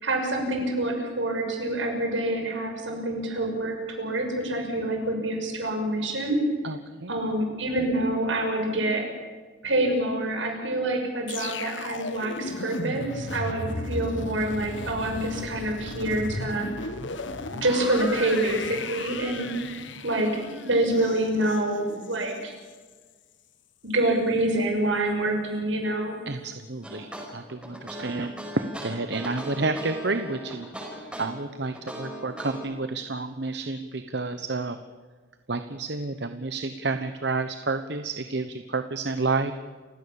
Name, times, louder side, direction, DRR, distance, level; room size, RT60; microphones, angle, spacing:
voice 1, 0.0-6.4 7.1-9.0 9.6-16.7 17.5-19.8 20.0-22.5 23.8-26.2, right 1 dB, 80° right, 2 dB, 6.3 m, -26 dB
voice 2, 6.6-7.2 26.3-27.1 27.3-34.8 35.5-39.5, right 3 dB, 60° right, 9 dB, 1.1 m, -30 dB
sound 1, 11.3-22.4 22.7-22.9, left 3 dB, 75° left, 1.7 m, -35 dB
sound 2, 26.8-32.7, equal, 5° right, 5.4 m, -38 dB
29.0 x 16.5 x 7.1 m, 1.4 s
head